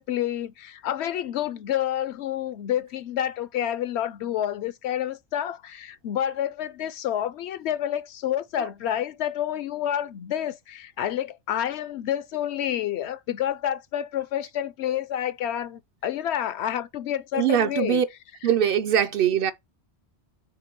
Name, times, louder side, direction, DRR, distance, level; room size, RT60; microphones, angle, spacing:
voice 1, 0.0-18.0 18.4-18.5, left 11 dB, 75° left, 0.8 m, -29 dB
voice 2, 17.3-18.0 18.4-19.5, right 9 dB, 60° right, 0.7 m, -22 dB
5.9 x 3.8 x 4.4 m
omnidirectional pair, 1.2 m